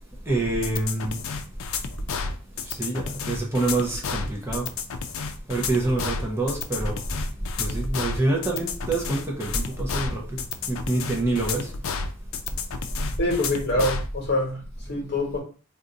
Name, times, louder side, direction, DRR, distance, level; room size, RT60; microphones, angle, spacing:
voice 1, 0.3-1.2 2.7-4.7 5.5-7.0 7.6-10.4 10.7-11.7, right 2 dB, 10° right, 0.6 m, -26 dB
sound 1, 0.6-14.1, left 5 dB, 75° left, 0.4 m, -31 dB
voice 2, 13.2-15.4, left 1 dB, 50° left, 1.1 m, -25 dB
2.6 x 2.3 x 3.8 m
head